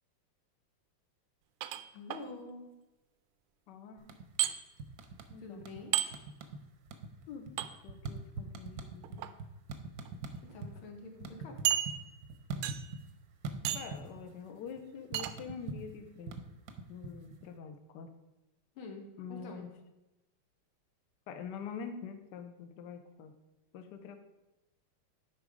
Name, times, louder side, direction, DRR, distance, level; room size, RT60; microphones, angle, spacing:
sound 1, 1.6-2.2 4.4-4.5 5.9-6.1 7.6-7.7 9.0-9.3 10.1-10.2 10.5-10.6 11.7-12.3 12.6-13.0 13.7-14.0 15.1-15.3, right 11 dB, 85° right, 1.5 m, -32 dB
voice 1, 1.9-2.7 5.4-6.0 10.5-11.6 18.8-19.7, left 3 dB, 80° left, 2 dB, 2.1 m, -46 dB
voice 2, 3.7-4.1 5.3-5.6 7.3-9.3 13.7-16.4 16.9-18.1 19.2-19.7 21.3-23.3 23.7-24.2, left 6 dB, 65° left, 7 dB, 1.2 m, -45 dB
sound 2, 4.0-4.5 4.8-5.8 6.1-6.6 6.9-10.7 11.0-13.1 13.4-14.3 14.6-17.4, right 3 dB, 65° right, 1.0 m, -42 dB
10.5 x 4.0 x 4.9 m, 1.0 s
omnidirectional pair, 2.3 m